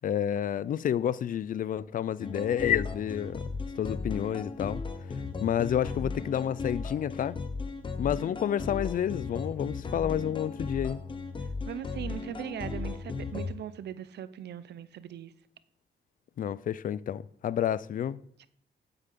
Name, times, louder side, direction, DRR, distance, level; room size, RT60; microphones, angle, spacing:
voice 1, 0.0-3.4 3.8-4.8 5.4-7.4 8.0-11.0 16.4-18.2, left 10 dB, 50° left, 0.5 m, -29 dB
sound 1, 2.2-13.5, left 4 dB, 30° left, 1.0 m, -36 dB
voice 2, 11.6-15.3 18.4-18.5, right 10 dB, 75° right, 0.7 m, -39 dB
9.1 x 8.1 x 8.4 m
wide cardioid pair, 170°, 17 cm